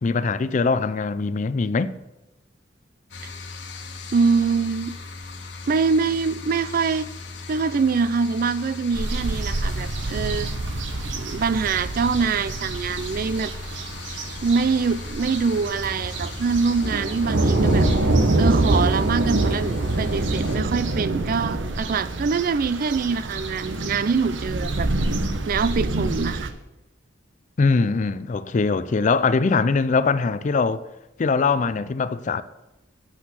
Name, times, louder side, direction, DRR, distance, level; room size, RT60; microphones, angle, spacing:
voice 1, 0.0-1.9 27.6-30.8 31.2-32.4, left 4 dB, 40° left, 0.4 m, -22 dB
sound 1, 3.1-20.6, left 3 dB, 75° left, 1.4 m, -38 dB
voice 2, 4.1-5.0 5.7-7.1 7.5-10.5 11.1-13.5 14.4-17.9 18.4-24.9 25.5-26.5, right 5 dB, 50° right, 0.4 m, -24 dB
sound 2, 8.9-26.5, right 2 dB, 85° right, 0.9 m, -25 dB
8.3 x 6.5 x 6.0 m
head